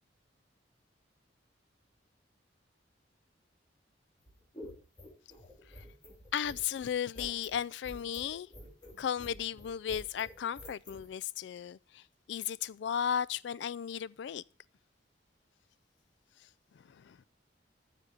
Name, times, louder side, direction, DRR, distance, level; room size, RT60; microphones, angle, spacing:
sound 1, 4.2-11.1, left 1 dB, 25° left, 3.5 m, -49 dB
voice 1, 6.3-8.5 9.0-12.0 12.3-14.4 17.1-17.2, left 8 dB, 75° left, 0.3 m, -35 dB
7.4 x 7.0 x 6.1 m
head